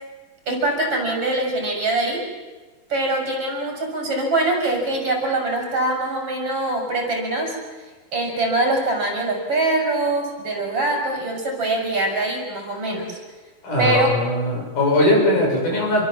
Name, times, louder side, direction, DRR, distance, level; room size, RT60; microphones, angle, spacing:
voice 1, 0.5-2.2 2.9-7.5 8.1-13.2 13.8-14.1, right 2 dB, 45° right, 1 dB, 7.2 m, -23 dB
voice 2, 13.6-16.1, left 1 dB, 90° left, -1 dB, 8.7 m, -20 dB
28.0 x 22.0 x 7.5 m, 1.3 s
omnidirectional pair, 3.5 m